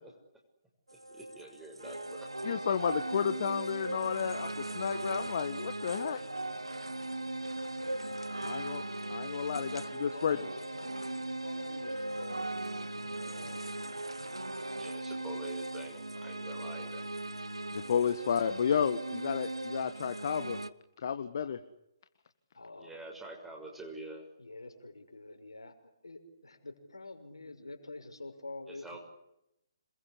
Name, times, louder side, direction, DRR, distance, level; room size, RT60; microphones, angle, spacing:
voice 1, 0.9-2.3 2.9-3.0 14.7-17.0 22.8-24.3 28.7-29.0, right 2 dB, 5° right, 1 dB, 6.4 m, -47 dB
sound 1, 0.9-20.7, right 2 dB, 85° right, 1.5 m, -38 dB
voice 2, 2.4-6.2 8.4-8.8 9.1-10.4 17.7-20.6 21.0-21.6, left 7 dB, 50° left, 9 dB, 1.7 m, -32 dB
voice 3, 10.1-10.9 11.4-13.7 22.5-23.0 24.4-29.0, left 2 dB, 75° left, 5 dB, 6.2 m, -48 dB
27.5 x 22.0 x 8.4 m, 0.84 s
figure-of-eight pair, 135°, 3 cm